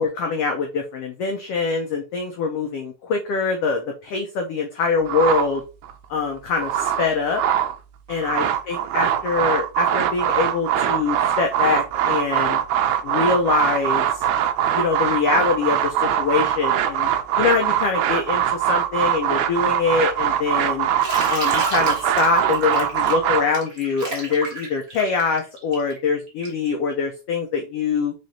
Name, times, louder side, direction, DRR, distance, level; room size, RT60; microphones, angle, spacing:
voice 1, 0.0-5.6 6.1-7.4 8.1-12.6 13.0-14.2 14.7-17.1 17.4-20.9 21.3-28.1, left 5 dB, 90° left, 3 dB, 1.3 m, -24 dB
sound 1, 5.1-5.9 6.4-7.8 8.1-23.4, right 10 dB, 80° right, 1.7 m, -22 dB
Bathtub (filling or washing), 21.0-26.7, right 2 dB, 40° right, 1.4 m, -31 dB
5.0 x 3.9 x 2.8 m, 0.32 s
omnidirectional pair, 3.6 m